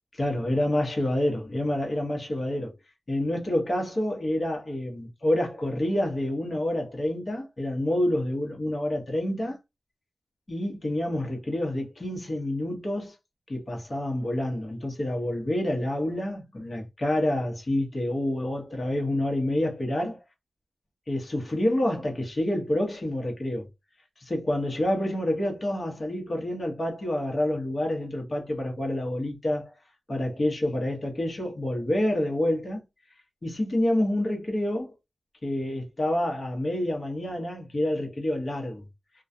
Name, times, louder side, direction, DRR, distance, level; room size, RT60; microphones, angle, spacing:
voice 1, 0.1-2.7 3.1-9.6 10.5-13.1 13.5-20.2 21.1-23.7 24.2-29.8 30.1-32.8 33.4-34.9 35.4-38.8, left 1 dB, 35° left, 1.0 m, -28 dB
2.3 x 2.2 x 2.6 m
wide cardioid pair, 140°, 0 cm